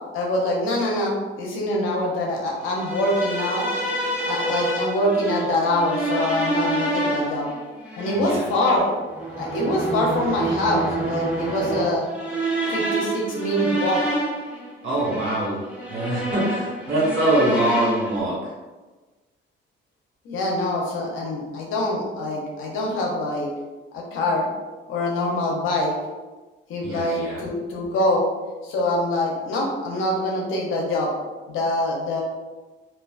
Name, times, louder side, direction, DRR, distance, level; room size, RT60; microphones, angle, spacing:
voice 1, 0.1-3.7 4.3-7.5 8.0-8.9 9.4-12.1 12.7-14.0 20.2-23.5 23.9-24.5 24.9-26.0 26.7-28.3 28.6-31.1 31.5-32.2, left 1 dB, 90° left, -1 dB, 0.7 m, -24 dB
sound 1, 2.7-18.2, right 1 dB, 5° right, 0.7 m, -28 dB
voice 2, 8.1-8.5 14.8-18.5 26.8-27.4, right 1 dB, 70° right, -6 dB, 1.3 m, -24 dB
2.4 x 2.2 x 2.4 m, 1.2 s
cardioid pair, 90°, 20 cm